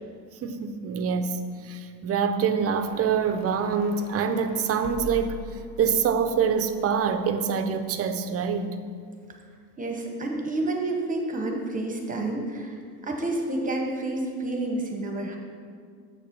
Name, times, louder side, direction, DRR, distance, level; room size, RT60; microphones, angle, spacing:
voice 1, 0.4-5.4 5.8-8.8, right 6 dB, 40° right, 9 dB, 0.6 m, -25 dB
sound 1, 2.5-7.8, left 5 dB, 60° left, 0.9 m, -44 dB
voice 2, 9.8-15.4, right 2 dB, 20° right, 2 dB, 1.0 m, -29 dB
7.4 x 6.6 x 5.9 m, 2.1 s
cardioid pair, 145°, 38 cm